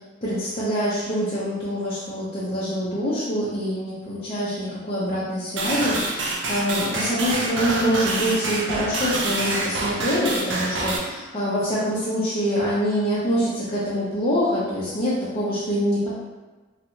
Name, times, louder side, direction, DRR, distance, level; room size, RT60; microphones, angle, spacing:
voice 1, 0.2-16.1, equal, 30° left, -10 dB, 0.7 m, -25 dB
sound 1, 5.6-11.0, right 2 dB, 65° right, 0.5 m, -26 dB
3.2 x 2.8 x 2.8 m, 1.2 s
head